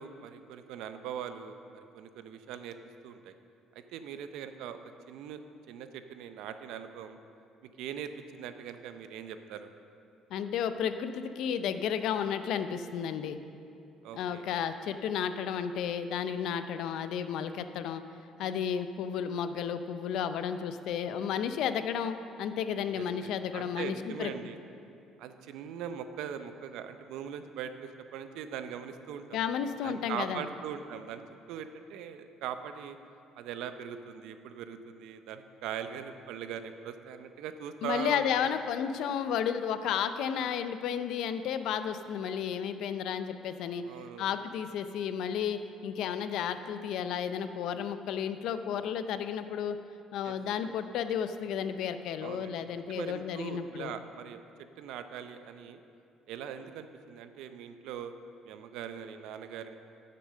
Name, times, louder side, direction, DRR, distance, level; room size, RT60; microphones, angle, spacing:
voice 1, 0.0-2.8 3.0-3.3 3.7-4.8 5.1-5.4 5.7-7.2 7.6-9.7 14.0-14.4 22.9-24.6 25.2-29.4 29.8-31.2 31.5-33.0 33.4-38.5 43.8-44.3 50.2-50.6 52.2-52.5 52.9-54.4 54.8-55.8 56.3-58.1 58.4-59.7, right 8 dB, 75° right, 9 dB, 0.5 m, -41 dB
voice 2, 10.3-13.4 14.1-18.0 18.4-24.3 29.3-30.4 37.8-43.8 44.2-49.8 50.1-53.9, left 8 dB, 65° left, 10 dB, 0.5 m, -32 dB
9.5 x 6.8 x 6.5 m, 2.6 s
cardioid pair, 170°, 0 cm